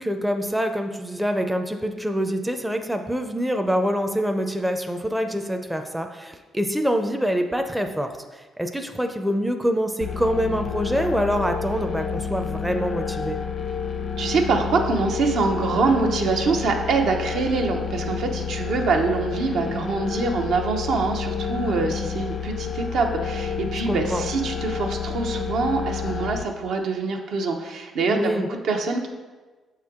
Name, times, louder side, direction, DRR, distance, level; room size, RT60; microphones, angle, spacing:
voice 1, 0.0-13.4 23.9-24.3 28.1-28.5, equal, 5° right, 5 dB, 0.4 m, -25 dB
sound 1, 10.0-26.4, left 6 dB, 50° left, 0.5 m, -29 dB
voice 2, 14.2-29.1, right 4 dB, 75° right, 3 dB, 0.7 m, -24 dB
6.8 x 4.4 x 3.6 m, 1.3 s
cardioid pair, 90°, 0 cm